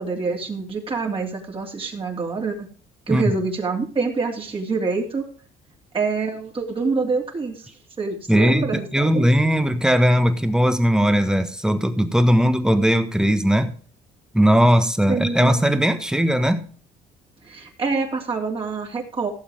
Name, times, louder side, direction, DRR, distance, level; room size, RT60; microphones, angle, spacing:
voice 1, 0.0-2.7 3.1-5.3 5.9-7.7 8.0-9.3 15.1-15.5 17.4-19.3, right 4 dB, 30° right, 3.0 m, -26 dB
voice 2, 8.3-13.7 14.3-16.6, equal, 5° right, 1.4 m, -18 dB
16.0 x 7.1 x 3.6 m
cardioid pair, 110°, 17 cm